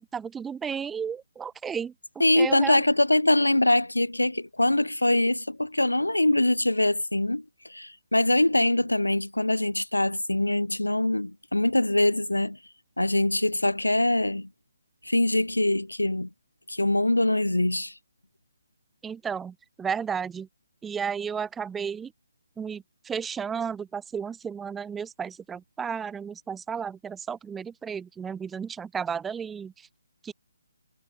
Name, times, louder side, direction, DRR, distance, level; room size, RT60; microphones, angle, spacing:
voice 1, 0.0-1.9 2.4-2.8 19.0-20.5 20.8-22.1 22.6-29.9 30.2-30.3, right 7 dB, 5° right, 0.9 m, -33 dB
voice 2, 2.2-7.4 7.7-12.6 13.0-14.5 15.0-16.3 16.7-17.9, left 1 dB, 80° left, 1.1 m, -23 dB
figure-of-eight pair, 145°, 0 cm